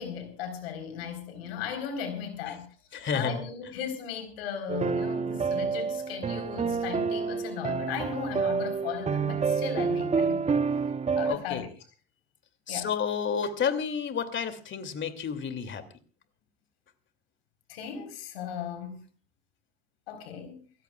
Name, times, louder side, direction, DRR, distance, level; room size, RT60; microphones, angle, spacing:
voice 1, 0.0-2.7 3.1-10.4 11.2-11.7 12.7-12.9 17.7-19.0 20.1-20.6, left 8 dB, 80° left, 4.3 m, -36 dB
voice 2, 2.9-3.4 11.3-11.7 12.7-15.8, left 6 dB, 40° left, 2.7 m, -31 dB
sound 1, 4.7-11.4, right 5 dB, 20° right, 0.8 m, -28 dB
29.0 x 15.5 x 2.4 m
hypercardioid pair, 65°, 30 cm